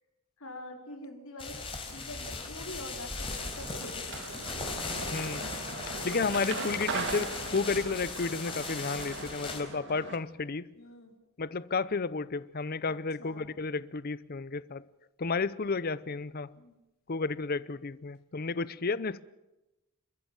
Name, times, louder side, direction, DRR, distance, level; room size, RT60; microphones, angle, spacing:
voice 1, 0.4-1.6 1.8-4.7 10.8-11.1 12.8-13.5 16.6-16.8, left 1 dB, 80° left, 4.5 m, -45 dB
sound 1, 1.4-9.6, left 4 dB, 25° left, 4.3 m, -38 dB
sound 2, 3.3-10.2, right 3 dB, 60° right, 2.1 m, -39 dB
voice 2, 5.1-5.5 6.0-10.7 11.4-14.8 15.2-16.5 17.1-19.2, left 4 dB, 45° left, 0.7 m, -32 dB
29.0 x 14.5 x 7.5 m
head